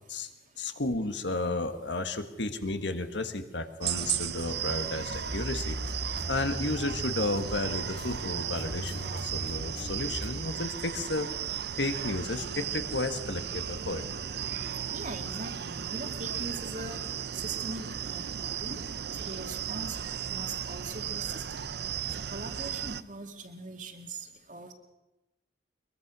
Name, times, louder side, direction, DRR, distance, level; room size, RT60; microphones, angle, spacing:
voice 1, 0.6-6.0 6.3-11.3 11.8-14.0, left 2 dB, 70° left, 8 dB, 1.6 m, -33 dB
sound 1, 3.8-23.0, right 9 dB, 55° right, 0.6 m, -35 dB
sound 2, 5.1-10.3, equal, 35° left, 4.6 m, -38 dB
voice 2, 14.9-17.0 17.3-18.8 19.1-21.7 22.1-24.7, right 2 dB, 40° right, 5 dB, 2.2 m, -41 dB
23.0 x 22.0 x 6.2 m, 1.0 s
head